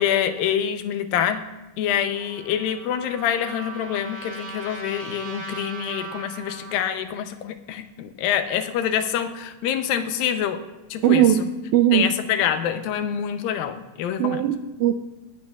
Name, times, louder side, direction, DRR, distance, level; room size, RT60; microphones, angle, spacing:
voice 1, 0.0-1.5 1.8-10.6 10.9-11.5 11.9-14.6, left 9 dB, 90° left, 9 dB, 2.5 m, -26 dB
Trumpet, 2.1-6.8, right 3 dB, 40° right, 2.2 m, -38 dB
voice 2, 11.0-11.4 11.7-12.1 14.2-15.0, right 12 dB, 85° right, 7 dB, 1.7 m, -18 dB
18.5 x 12.0 x 2.4 m, 1.1 s
omnidirectional pair, 3.9 m